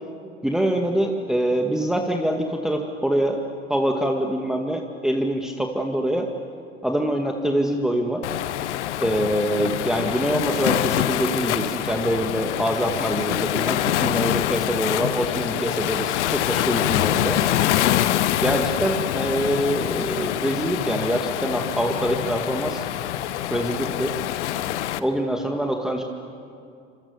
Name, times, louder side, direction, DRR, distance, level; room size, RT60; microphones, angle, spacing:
voice 1, 0.4-3.4 3.7-6.3 6.8-8.2 9.0-17.4 18.4-22.8 23.5-24.1 25.0-26.0, right 1 dB, ahead, 2 dB, 2.0 m, -24 dB
Waves surf, 8.2-25.0, left 12 dB, 65° left, 1.1 m, -25 dB
29.5 x 26.5 x 7.0 m, 2.4 s
figure-of-eight pair, 75°, 37 cm